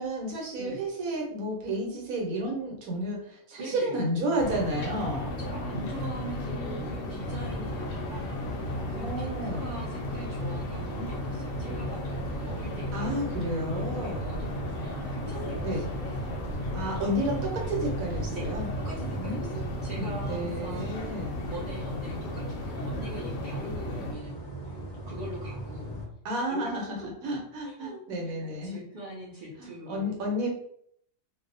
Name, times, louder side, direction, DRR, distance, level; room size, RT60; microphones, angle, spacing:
voice 1, 0.0-5.3 9.0-9.7 12.9-14.3 15.6-15.8 16.7-18.7 19.1-19.6 19.9-21.4 26.2-28.8 29.6-30.5, right 1 dB, 85° right, -1 dB, 1.2 m, -31 dB
voice 2, 3.6-4.0 5.2-13.4 13.9-16.1 16.7-17.2 18.3-18.5 18.8-24.4 24.6-24.8 25.1-25.9 26.5-27.1 27.5-30.5, right 1 dB, 50° right, -6 dB, 0.6 m, -42 dB
sound 1, 4.4-24.1, left 1 dB, 75° left, 0.9 m, -34 dB
sound 2, 7.3-26.1, right 1 dB, 30° left, 0.5 m, -41 dB
2.6 x 2.0 x 2.5 m, 0.70 s
omnidirectional pair, 1.4 m